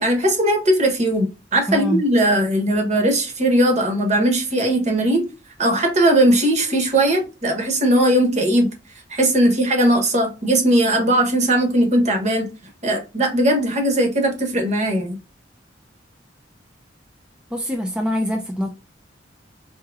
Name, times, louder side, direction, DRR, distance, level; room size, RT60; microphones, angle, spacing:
voice 1, 0.0-5.3 5.6-8.7 9.1-12.5 12.8-15.2, right 1 dB, 40° right, 1.2 m, -19 dB
voice 2, 1.7-2.0 17.5-18.7, equal, 5° right, 0.4 m, -23 dB
4.6 x 3.0 x 2.3 m
head